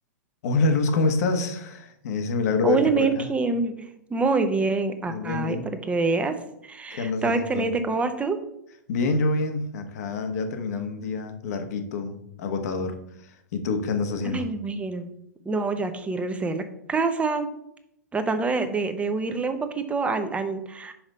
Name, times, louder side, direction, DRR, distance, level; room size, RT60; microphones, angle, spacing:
voice 1, 0.4-3.3 5.1-5.7 6.9-7.7 8.9-12.9 13.2-14.5, left 3 dB, 60° left, 6 dB, 1.2 m, -27 dB
voice 2, 2.6-3.8 4.1-6.4 6.6-8.4 14.2-15.1 15.5-17.5 18.1-20.9, right 3 dB, 15° right, 8 dB, 0.8 m, -26 dB
5.8 x 4.9 x 5.4 m, 0.77 s
hypercardioid pair, 105°, 10 cm